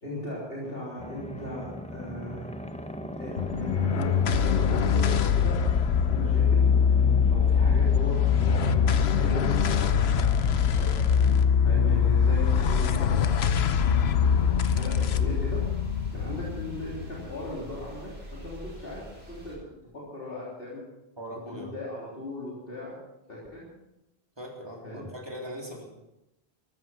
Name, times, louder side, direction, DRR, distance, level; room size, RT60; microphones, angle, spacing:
voice 1, 0.0-2.5 3.2-5.6 6.1-6.6 7.2-9.5 9.8-9.9 10.6-11.3 11.6-15.6 16.1-19.6 19.9-20.8 21.5-22.9 23.3-23.7 24.8-25.0, left 1 dB, 65° left, -6 dB, 3.8 m, -38 dB
sound 1, 1.0-11.4, left 1 dB, 5° left, 0.7 m, -38 dB
sound 2, 3.4-18.0, left 7 dB, 85° left, 1.0 m, -23 dB
sound 3, 12.4-19.6, equal, 85° right, 4.6 m, -47 dB
voice 2, 21.2-21.7 24.4-25.9, equal, 25° right, -1 dB, 3.6 m, -40 dB
14.5 x 13.5 x 6.0 m, 0.92 s
omnidirectional pair, 1.0 m